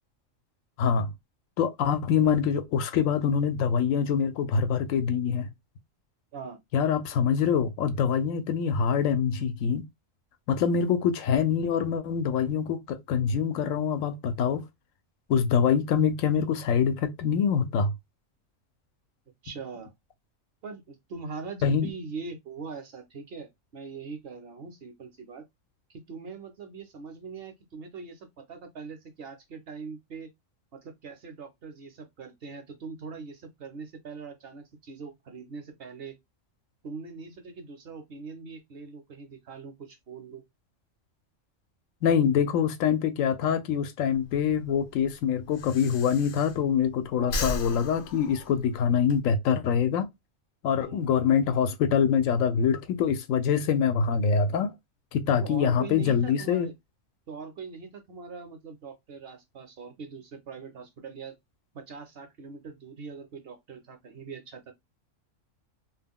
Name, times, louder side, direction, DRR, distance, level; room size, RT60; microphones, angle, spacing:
voice 1, 0.8-1.1 1.6-5.5 6.7-9.8 10.5-14.6 15.3-17.9 21.6-21.9 42.0-50.1 50.6-54.7 55.1-56.7, left 7 dB, 90° left, 1.0 m, -25 dB
voice 2, 6.3-6.6 19.4-19.9 20.6-25.4 25.9-30.3 30.7-36.2 36.8-40.4 47.2-47.4 50.8-51.0 55.4-56.7 57.3-61.3 61.7-64.7, right 5 dB, 55° right, 0.8 m, -42 dB
Breathing, 44.1-46.9 47.2-49.2, left 2 dB, 65° left, 0.8 m, -36 dB
2.4 x 2.1 x 3.5 m
omnidirectional pair, 1.3 m